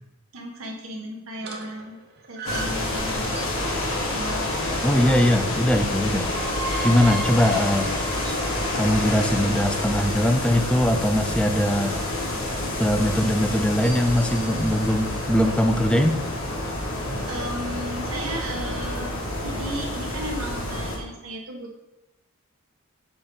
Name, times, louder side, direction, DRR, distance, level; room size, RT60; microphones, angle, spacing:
voice 1, 0.3-2.0 2.3-3.5 4.1-4.5 17.3-19.1 19.4-21.8, right 1 dB, 70° right, 0 dB, 1.3 m, -35 dB
sound 1, 1.4-3.7 5.9-10.0 13.6-15.8, right 3 dB, 50° right, 0.9 m, -37 dB
sound 2, 2.4-21.0, left 1 dB, 75° left, 1.6 m, -28 dB
voice 2, 4.8-6.3 6.8-7.9 8.2-8.3 8.7-12.0 12.8-16.2, equal, 5° left, 7 dB, 0.4 m, -21 dB
7.9 x 4.2 x 3.9 m, 0.96 s
head